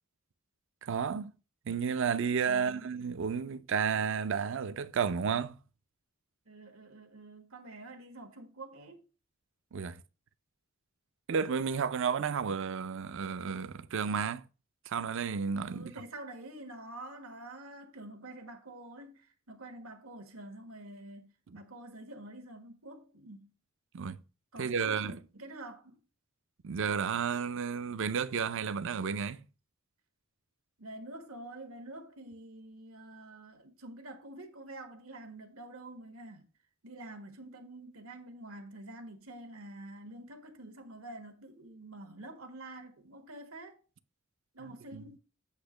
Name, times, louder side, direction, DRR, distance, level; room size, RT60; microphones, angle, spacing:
voice 1, 0.8-1.3 1.7-5.6 9.7-10.0 11.3-14.4 14.9-15.9 23.9-24.2 24.6-25.1 26.6-29.4 44.6-45.1, right 6 dB, 60° right, 0.5 m, -32 dB
voice 2, 2.5-2.9 6.5-9.0 15.7-23.5 24.5-26.0 30.8-36.5 36.8-43.8 44.5-45.2, right 1 dB, 85° right, 1.4 m, -47 dB
8.3 x 2.9 x 6.3 m
head